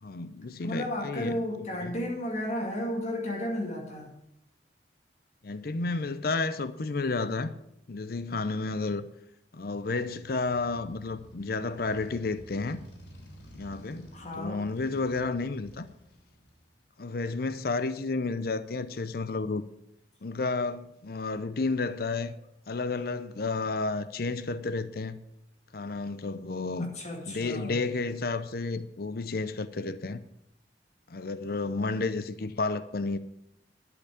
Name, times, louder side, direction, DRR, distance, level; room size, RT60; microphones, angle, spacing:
voice 1, 0.0-2.0 5.4-7.5 7.9-9.0 9.5-12.8 13.6-14.1 14.4-15.9 17.0-19.6 20.2-22.3 22.7-25.2 25.7-26.9 27.3-30.2 31.1-33.2, left 3 dB, 55° left, 0.6 m, -31 dB
voice 2, 0.6-4.1 14.1-14.6 26.8-27.8, left 1 dB, 40° left, 2.1 m, -33 dB
Motorcycle, 10.2-16.8, equal, 80° left, 3.6 m, -52 dB
12.0 x 5.9 x 8.4 m
head